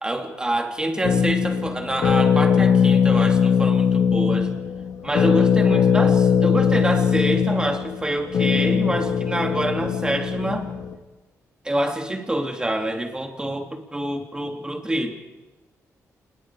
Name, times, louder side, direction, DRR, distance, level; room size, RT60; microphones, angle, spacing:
voice 1, 0.0-4.5 5.0-10.7 11.6-15.1, right 1 dB, 15° right, 3 dB, 3.3 m, -26 dB
sound 1, 1.0-10.9, left 7 dB, 85° left, 2.1 m, -20 dB
28.0 x 21.5 x 5.1 m, 1.2 s
cardioid pair, 120°, 6 cm